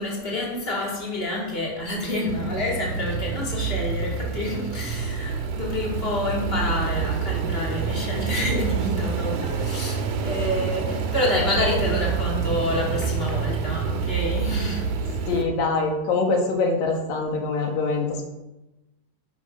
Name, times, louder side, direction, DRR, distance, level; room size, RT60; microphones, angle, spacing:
voice 1, 0.0-15.0, left 1 dB, 20° left, 2.5 m, -28 dB
sound 1, 2.3-15.4, right 6 dB, 65° right, 2.4 m, -27 dB
voice 2, 15.3-18.2, left 3 dB, 85° left, 3.4 m, -24 dB
10.5 x 8.7 x 5.5 m
omnidirectional pair, 3.9 m